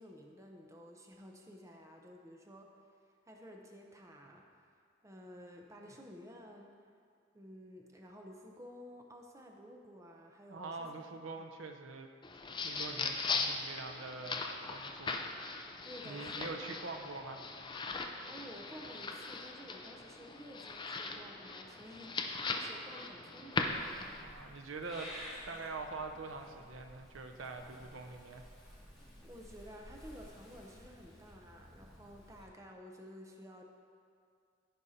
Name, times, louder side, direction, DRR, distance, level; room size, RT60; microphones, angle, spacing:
voice 1, 0.0-2.7 3.2-4.8 5.0-6.7 7.3-10.9 11.4-11.6 15.8-16.8 18.2-24.2 29.2-33.6, equal, 15° right, 1 dB, 0.7 m, -53 dB
voice 2, 10.5-12.1 12.6-14.5 14.7-15.2 15.7-15.8 16.0-17.4 24.2-25.1 25.5-28.4, right 3 dB, 75° right, 4 dB, 0.7 m, -44 dB
sound 1, 12.2-24.2, left 3 dB, 25° left, 0.5 m, -39 dB
Purr / Meow, 23.5-32.5, equal, ahead, 2.3 m, -53 dB
15.0 x 5.4 x 4.2 m, 2.3 s
head